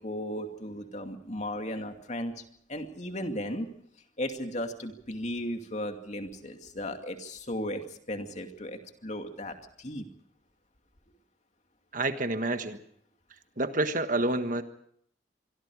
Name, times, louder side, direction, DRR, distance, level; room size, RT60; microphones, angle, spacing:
voice 1, 0.0-2.4 2.7-3.7 4.2-10.1, left 1 dB, 40° left, 5 dB, 2.5 m, -36 dB
voice 2, 11.9-12.8 13.6-14.6, right 2 dB, 45° right, 8 dB, 1.5 m, -28 dB
26.0 x 23.5 x 4.9 m, 0.66 s
head